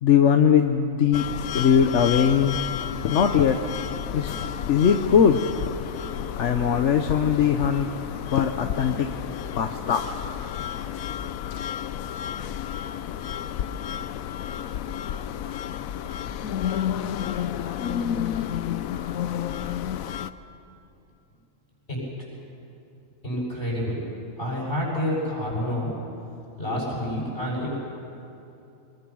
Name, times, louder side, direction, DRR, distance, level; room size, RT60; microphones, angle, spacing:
voice 1, 0.0-2.6 3.1-3.6 4.1-4.3 4.7-5.4 6.4-7.9 8.3-9.1 9.6-10.1, left 7 dB, 60° left, 6 dB, 1.1 m, -20 dB
sound 1, 1.1-20.3, left 9 dB, 85° left, 1.1 m, -31 dB
voice 2, 21.9-22.3 23.2-24.0 24.4-25.9 26.6-27.8, equal, 40° left, -5 dB, 7.7 m, -28 dB
24.5 x 21.0 x 6.3 m, 2.8 s
omnidirectional pair, 1.4 m